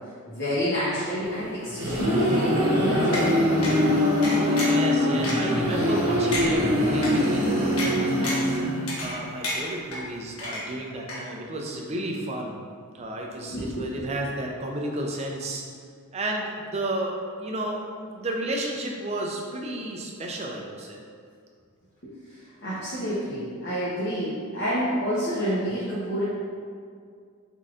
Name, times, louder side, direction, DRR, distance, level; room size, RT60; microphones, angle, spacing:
voice 1, 0.3-3.5 13.4-13.9 22.0-26.2, equal, 50° left, -10 dB, 1.0 m, -28 dB
sound 1, 1.4-9.1, left 1 dB, 80° right, 1.1 m, -23 dB
sound 2, 3.1-3.3 3.6-3.8 4.2-4.8 5.2-5.3 5.9-6.0 6.3-6.5 7.0-7.1 7.8-7.9 8.2-8.5 8.9-9.2 9.4-10.0 10.4-10.8 11.1-11.2, left 2 dB, 75° left, 1.1 m, -30 dB
voice 2, 4.3-8.6 9.0-12.6 12.9-15.6 16.1-17.8 18.1-21.0, right 1 dB, 30° right, 0 dB, 0.4 m, -32 dB
4.6 x 4.1 x 2.4 m, 2.2 s
head